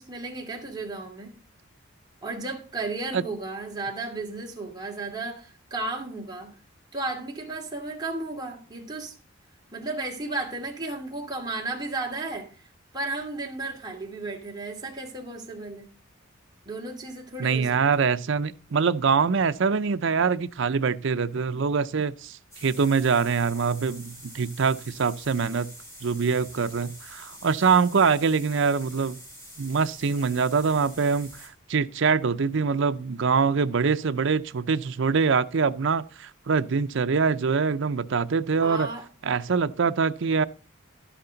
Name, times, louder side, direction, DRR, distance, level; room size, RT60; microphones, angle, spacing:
voice 1, 0.0-1.3 2.2-6.5 6.9-9.2 9.7-12.5 12.9-15.9 16.6-17.7 18.0-18.1 38.6-39.0, right 2 dB, 20° right, 2.6 m, -34 dB
voice 2, 17.4-25.7 26.0-29.2 29.6-38.9 39.2-40.4, right 5 dB, 60° right, 0.5 m, -24 dB
sound 1, 22.5-31.5, equal, 15° left, 6.6 m, -46 dB
12.0 x 10.0 x 3.9 m
head